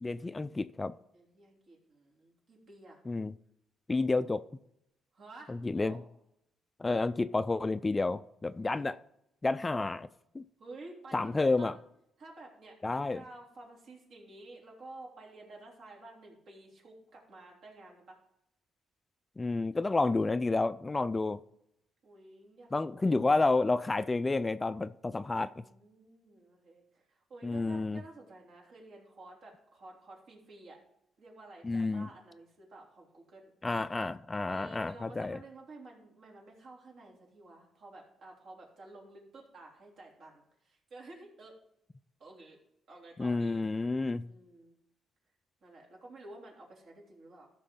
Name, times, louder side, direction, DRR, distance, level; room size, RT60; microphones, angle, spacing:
voice 1, 0.0-0.9 3.1-3.3 3.9-4.4 5.5-6.0 6.8-9.0 9.4-10.1 10.3-10.4 11.1-11.7 12.8-13.2 19.4-21.4 22.7-25.6 27.4-28.0 31.6-32.1 33.6-35.4 43.2-44.3, left 3 dB, 20° left, 0.3 m, -30 dB
voice 2, 1.1-3.0 5.1-6.0 8.6-8.8 10.6-11.8 12.2-18.2 22.0-23.4 25.6-30.8 31.2-33.5 34.5-41.5 42.2-42.6 42.9-43.7 44.3-44.7 45.6-47.5, right 2 dB, 65° right, 3.2 m, -52 dB
14.0 x 5.9 x 3.8 m
cardioid pair, 90°, 0 cm